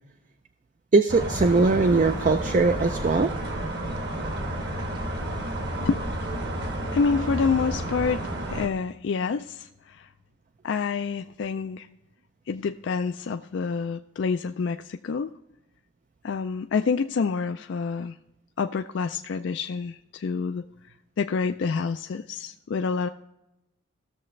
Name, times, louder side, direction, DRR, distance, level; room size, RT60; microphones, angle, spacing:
voice 1, 0.9-3.3, right 3 dB, 35° right, 8 dB, 0.4 m, -20 dB
sound 1, 1.1-8.7, right 1 dB, 55° right, 1.4 m, -31 dB
voice 2, 6.9-10.1 10.6-11.9 12.5-15.3 16.2-18.2 18.6-20.7 21.2-23.1, left 5 dB, 60° left, 8 dB, 0.3 m, -27 dB
16.0 x 6.7 x 3.2 m, 0.92 s
head